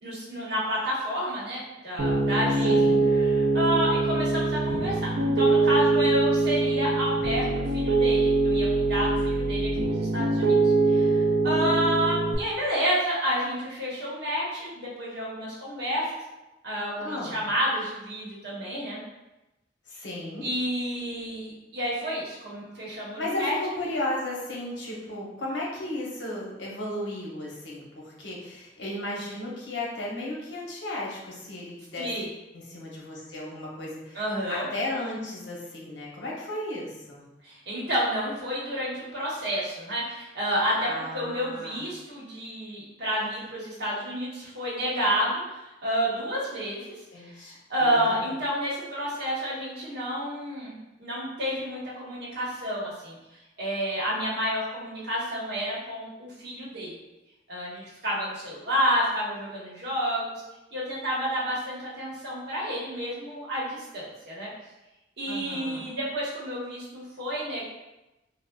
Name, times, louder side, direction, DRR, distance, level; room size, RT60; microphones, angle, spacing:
voice 1, 0.0-2.8 3.1-10.5 10.9-16.0 16.6-19.0 20.4-23.5 32.0-32.3 34.1-34.7 37.4-46.9 47.2-47.3 47.7-53.2 53.6-57.0 57.5-60.4 60.7-64.5 65.2-67.6, equal, 65° right, -6 dB, 1.0 m, -30 dB
Piano, 2.0-12.3, right 3 dB, 90° right, 0.4 m, -23 dB
voice 2, 2.7-3.1 17.0-17.4 19.9-20.5 23.1-32.1 32.5-34.2 34.5-37.2 40.8-41.8 47.1-48.2 65.3-65.9, left 1 dB, 75° left, -3 dB, 0.8 m, -35 dB
3.4 x 2.1 x 2.2 m, 0.99 s
head